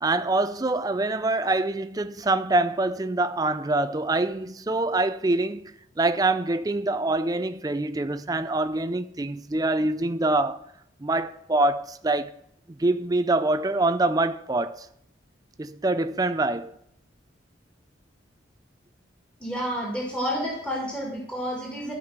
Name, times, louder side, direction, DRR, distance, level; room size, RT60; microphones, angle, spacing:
voice 1, 0.0-10.6 11.0-12.3 12.8-14.9 15.6-16.7, right 2 dB, 20° right, 0.4 m, -25 dB
voice 2, 19.4-21.9, equal, 5° left, 1.9 m, -30 dB
12.5 x 5.3 x 7.7 m
head